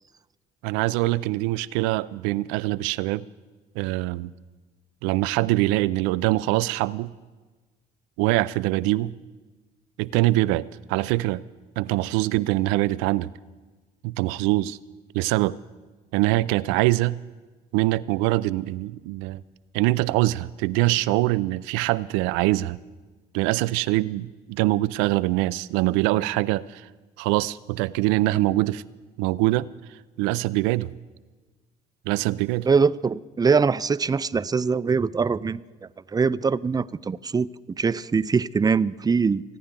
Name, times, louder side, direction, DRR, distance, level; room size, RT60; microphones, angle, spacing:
voice 1, 0.6-3.2 3.8-4.3 5.0-7.1 8.2-9.2 10.0-11.4 11.8-13.3 14.0-14.8 15.1-15.6 16.1-17.2 17.7-19.4 19.7-22.8 23.3-26.9 27.2-28.8 29.2-29.7 30.2-30.9 32.1-32.7, right 18 dB, 85° right, 18 dB, 0.4 m, -23 dB
voice 2, 32.7-35.6 36.1-37.5 37.8-39.4, right 5 dB, 20° right, 17 dB, 0.4 m, -22 dB
30.0 x 10.0 x 3.7 m, 1.3 s
supercardioid pair, 65°, 20 cm